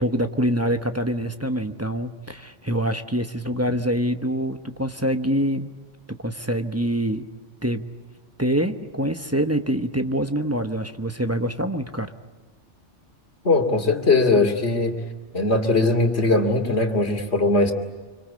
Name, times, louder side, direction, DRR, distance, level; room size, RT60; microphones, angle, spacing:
voice 1, 0.0-5.7 6.1-7.3 7.6-7.9 8.4-12.1, equal, 15° right, 7 dB, 1.0 m, -25 dB
voice 2, 13.4-14.9 15.3-17.7, left 3 dB, 60° left, 5 dB, 2.8 m, -20 dB
26.5 x 25.0 x 8.5 m, 1.4 s
omnidirectional pair, 1.2 m